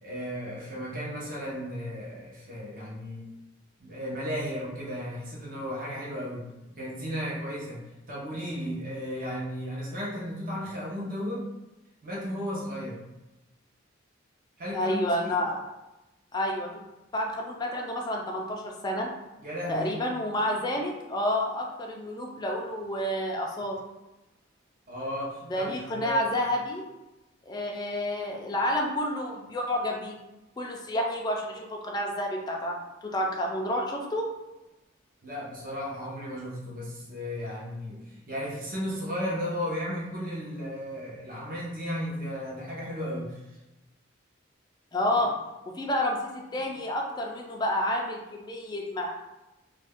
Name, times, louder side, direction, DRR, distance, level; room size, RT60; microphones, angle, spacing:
voice 1, 0.0-3.3 3.8-6.4 6.7-7.8 8.1-11.5 12.0-13.0 14.6-15.3 19.4-20.0 24.9-26.3 35.2-38.0 38.3-43.3 45.1-45.2, equal, 45° right, -6 dB, 0.8 m, -34 dB
voice 2, 14.7-15.6 16.3-16.7 17.1-19.1 19.7-23.8 25.5-26.8 27.4-30.2 30.6-34.3 44.9-45.3 45.7-49.1, left 1 dB, 20° left, 0 dB, 0.4 m, -29 dB
2.5 x 2.2 x 3.4 m, 1.0 s
head